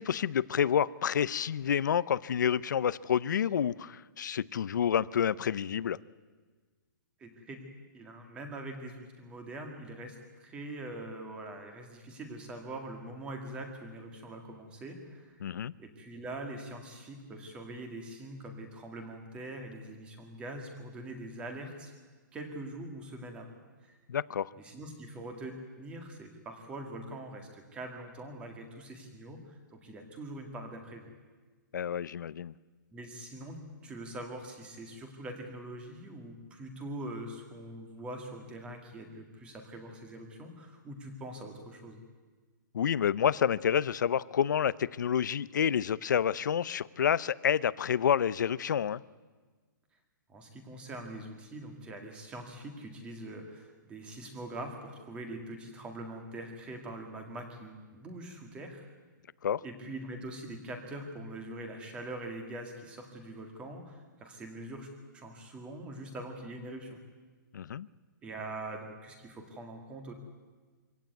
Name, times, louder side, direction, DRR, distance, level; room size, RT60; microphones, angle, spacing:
voice 1, 0.0-6.0 15.4-15.7 24.1-24.5 31.7-32.5 42.7-49.0 59.4-59.6 67.5-67.9, left 8 dB, 60° left, 20 dB, 0.6 m, -29 dB
voice 2, 7.2-7.6 7.9-15.4 15.8-21.9 22.3-23.6 23.8-24.0 24.6-31.1 32.9-42.0 50.3-58.9 59.6-64.9 65.1-67.0 68.2-70.1, right 1 dB, 10° right, 4 dB, 2.0 m, -43 dB
24.5 x 16.5 x 9.2 m, 1.4 s
hypercardioid pair, 175°, 11 cm